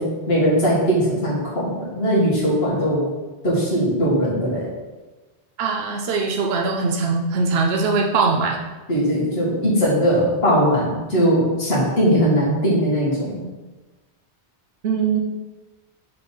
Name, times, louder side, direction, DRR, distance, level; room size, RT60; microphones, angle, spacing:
voice 1, 0.0-3.1 3.4-4.7 8.9-13.4, equal, 65° left, -7 dB, 2.1 m, -20 dB
voice 2, 5.6-8.6 14.8-15.2, right 4 dB, 70° right, 1 dB, 0.9 m, -21 dB
5.7 x 4.1 x 5.1 m, 1.2 s
omnidirectional pair, 1.1 m